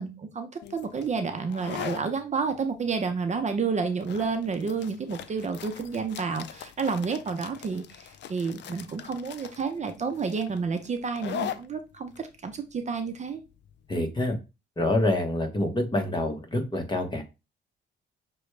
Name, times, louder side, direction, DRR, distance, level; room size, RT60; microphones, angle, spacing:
voice 1, 0.0-13.4, right 5 dB, 35° right, 0.7 m, -30 dB
sound 1, 0.6-14.0, left 9 dB, 60° left, 0.5 m, -41 dB
voice 2, 13.9-14.4 14.8-17.2, left 1 dB, 25° left, 1.1 m, -26 dB
6.0 x 2.3 x 3.2 m
cardioid pair, 90°, 20 cm